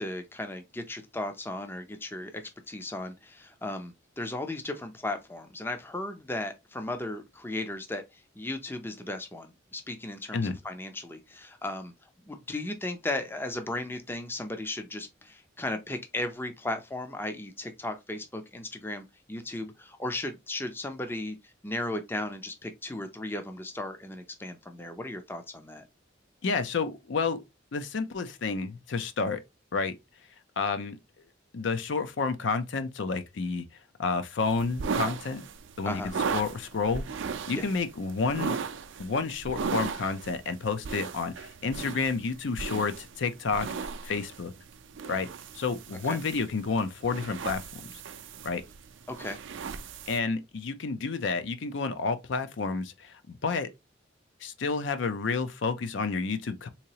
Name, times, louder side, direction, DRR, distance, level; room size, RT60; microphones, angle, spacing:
voice 1, 0.0-2.4 2.7-25.8 35.8-36.1 37.5-37.6 46.0-46.2 49.1-49.4, left 1 dB, 10° left, 0.4 m, -36 dB
voice 2, 26.4-27.4 27.7-29.4 29.7-29.9 30.6-31.0 31.5-33.6 34.0-35.4 35.8-36.0 36.3-37.1 37.5-38.6 39.0-44.5 45.1-45.3 45.5-47.8 48.4-48.6 50.1-53.7 54.4-56.7, left 4 dB, 70° left, 0.5 m, -30 dB
sound 1, 34.4-50.2, right 5 dB, 70° right, 0.4 m, -37 dB
3.7 x 2.9 x 2.8 m
head